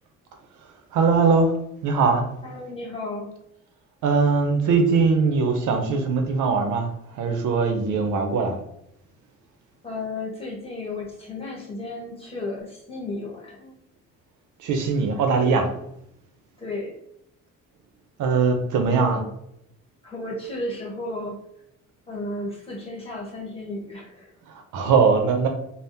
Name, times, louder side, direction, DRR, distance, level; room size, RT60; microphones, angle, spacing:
voice 1, 0.9-1.6 1.8-2.3 4.0-8.6 14.6-15.7 18.2-19.2 24.5-25.5, right 4 dB, 70° right, 4 dB, 0.6 m, -21 dB
voice 2, 2.4-3.3 9.8-13.8 15.1-15.2 16.6-16.9 18.8-19.3 20.0-21.4 22.1-24.3, left 2 dB, 20° left, -4 dB, 1.3 m, -34 dB
3.4 x 2.0 x 2.6 m, 0.78 s
cardioid pair, 90°, 31 cm